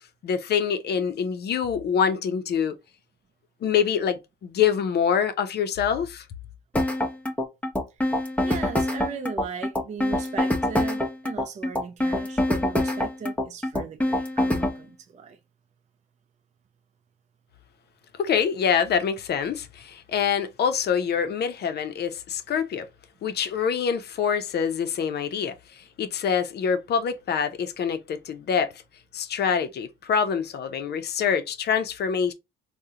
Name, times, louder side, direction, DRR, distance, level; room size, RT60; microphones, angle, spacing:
voice 1, 0.2-2.8 3.6-6.2 18.2-22.9 23.2-28.7 29.1-32.3, left 7 dB, 55° left, 0.5 m, -25 dB
sound 1, 6.7-14.8, left 1 dB, 5° left, 0.7 m, -25 dB
voice 2, 8.4-15.4, right 6 dB, 35° right, 0.4 m, -38 dB
3.6 x 2.1 x 2.7 m
cardioid pair, 90°, 20 cm